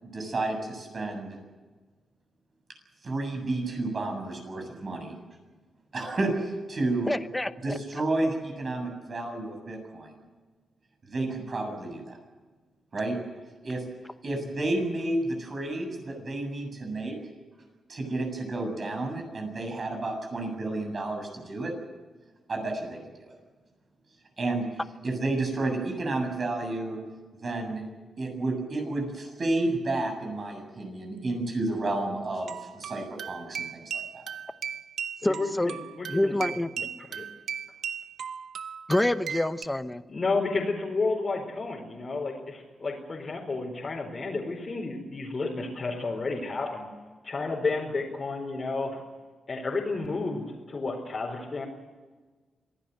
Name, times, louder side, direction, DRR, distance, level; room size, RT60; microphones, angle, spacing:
voice 1, 0.0-1.4 3.0-5.2 5.9-7.1 7.6-10.1 11.1-12.2 12.9-13.2 13.6-13.8 14.2-17.2 17.9-21.7 22.5-23.2 24.4-24.7 25.0-27.0 27.4-27.8 28.2-34.3, right 2 dB, 40° right, 4 dB, 7.6 m, -31 dB
voice 2, 7.1-7.8 35.2-35.7 36.1-36.7 38.9-40.0, left 1 dB, 10° left, 11 dB, 0.9 m, -27 dB
sound 1, 32.4-39.7, right 7 dB, 75° right, 0.9 m, -37 dB
voice 3, 35.2-36.4 37.1-37.2 40.1-46.9 47.2-49.0 49.5-51.7, left 3 dB, 35° left, -3 dB, 4.6 m, -31 dB
26.0 x 17.5 x 8.0 m, 1.4 s
wide cardioid pair, 125°, 0 cm